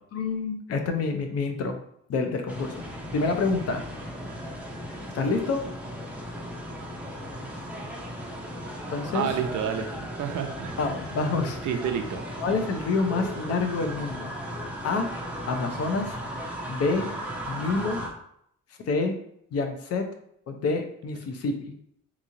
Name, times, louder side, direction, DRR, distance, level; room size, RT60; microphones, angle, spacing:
voice 1, 0.1-1.8 2.1-2.8 3.1-3.9 5.1-5.6 8.9-9.3 10.8-11.6 12.4-14.3 14.8-15.1 15.5-16.2 16.7-17.1 17.5-18.0 18.9-19.1 19.5-20.0 20.5-21.7, left 3 dB, 55° left, 5 dB, 0.6 m, -27 dB
sound 1, 2.5-18.1, equal, 5° right, 0.5 m, -36 dB
voice 2, 9.1-10.8 11.6-12.2, right 8 dB, 75° right, 6 dB, 0.5 m, -29 dB
3.7 x 3.0 x 2.6 m, 0.71 s
cardioid pair, 155°, 30 cm